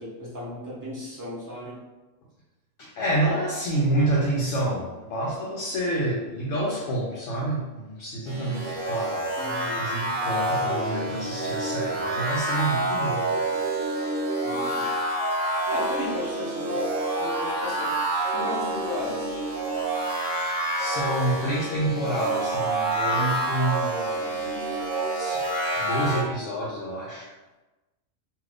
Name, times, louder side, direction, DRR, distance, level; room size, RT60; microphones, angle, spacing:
voice 1, 0.0-1.8 9.4-9.8 14.4-14.9 15.7-18.0 18.3-19.3, left 1 dB, 20° right, -8 dB, 0.7 m, -34 dB
voice 2, 2.8-9.2 9.8-13.3 20.8-24.4 25.1-25.4 25.8-27.3, right 1 dB, 75° left, -4 dB, 0.9 m, -28 dB
sound 1, 8.3-26.2, right 1 dB, 65° right, 1.1 m, -28 dB
2.6 x 2.4 x 3.3 m, 1.1 s
omnidirectional pair, 1.3 m